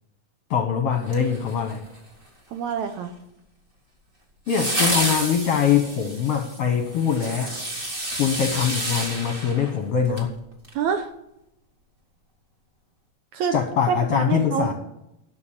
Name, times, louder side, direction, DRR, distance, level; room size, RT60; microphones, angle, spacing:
voice 1, 0.5-1.8 4.5-7.5 8.2-10.3 13.5-14.7, left 7 dB, 60° left, 4 dB, 1.7 m, -23 dB
sound 1, 1.0-2.0 4.5-10.3 10.6-10.7, right 1 dB, 20° right, 1.7 m, -29 dB
voice 2, 2.5-3.1 10.7-11.1 13.3-13.5 13.9-14.7, right 7 dB, 70° right, 6 dB, 1.9 m, -26 dB
12.0 x 7.0 x 7.2 m, 0.84 s
omnidirectional pair, 4.0 m